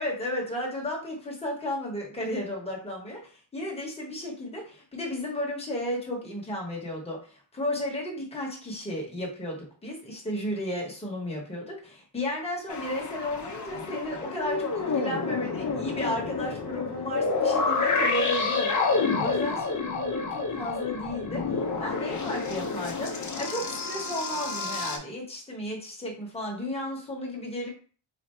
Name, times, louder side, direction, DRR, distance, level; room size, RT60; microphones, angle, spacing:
voice 1, 0.0-23.1 23.4-27.7, left 1 dB, 10° left, -3 dB, 0.9 m, -33 dB
sound 1, 12.7-25.0, left 4 dB, 40° left, 0.6 m, -29 dB
3.3 x 2.5 x 4.2 m, 0.42 s
wide cardioid pair, 180°, 49 cm